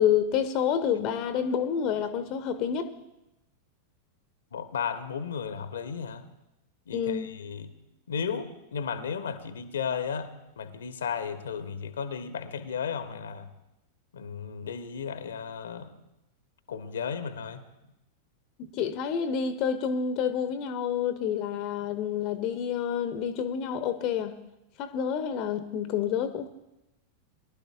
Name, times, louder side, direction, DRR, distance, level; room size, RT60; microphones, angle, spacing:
voice 1, 0.0-2.9 6.9-7.3 18.6-24.3 24.8-26.5, left 8 dB, 40° left, 10 dB, 0.7 m, -28 dB
voice 2, 4.5-6.3 6.9-7.7 8.1-10.3 10.6-13.5 14.1-15.9 16.7-17.6, left 6 dB, 65° left, 10 dB, 0.8 m, -34 dB
22.5 x 11.5 x 2.4 m, 0.90 s
figure-of-eight pair, 90°, 0 cm